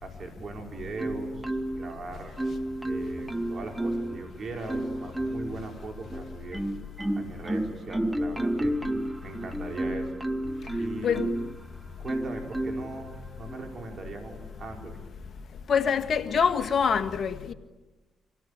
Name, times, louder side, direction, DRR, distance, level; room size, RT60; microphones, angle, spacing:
voice 1, 0.0-2.4 2.8-6.6 7.1-8.7 9.2-10.1 10.8-11.2 12.0-15.0, right 3 dB, 55° right, 4.8 m, -39 dB
Marimba xylophone, 1.0-2.0 2.4-4.2 4.7-5.6 6.1-11.6 12.1-12.9 13.5-13.7, right 1 dB, 10° right, 1.2 m, -31 dB
voice 2, 15.7-17.5, left 6 dB, 60° left, 1.7 m, -25 dB
26.0 x 17.0 x 10.0 m
supercardioid pair, 60°, 0 cm